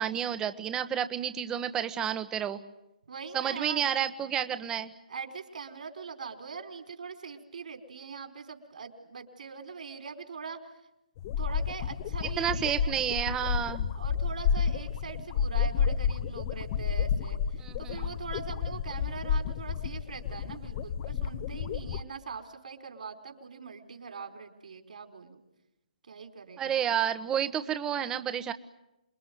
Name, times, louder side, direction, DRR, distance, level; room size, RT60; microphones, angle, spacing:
voice 1, 0.0-2.6 3.3-4.9 12.4-13.9 17.6-18.0 26.6-28.5, right 9 dB, 15° right, 11 dB, 1.2 m, -30 dB
voice 2, 3.1-3.9 5.1-10.6 11.4-12.9 13.9-25.4 26.1-26.8 27.1-27.2, right 5 dB, 65° right, 6 dB, 4.4 m, -42 dB
sound 1, 11.2-22.0, left 7 dB, 35° left, 1.0 m, -31 dB
27.5 x 21.5 x 9.3 m, 0.93 s
hypercardioid pair, 150°, 4 cm